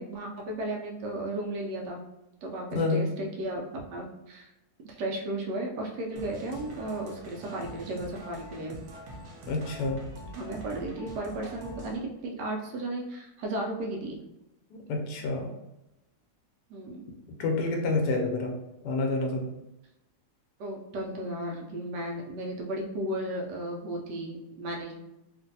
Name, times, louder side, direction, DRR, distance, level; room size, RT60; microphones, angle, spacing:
voice 1, 0.0-2.0 2.4-3.6 3.9-4.5 4.8-8.8 10.3-14.2 16.7-17.1 20.6-25.0, right 1 dB, 85° right, 0 dB, 1.2 m, -34 dB
sound 1, 6.2-12.0, right 1 dB, 65° right, 0.7 m, -44 dB
voice 2, 9.5-10.0 14.7-15.5 17.4-18.5 18.8-19.5, left 3 dB, 85° left, 1 dB, 1.2 m, -28 dB
3.0 x 2.5 x 2.6 m, 0.91 s
omnidirectional pair, 1.8 m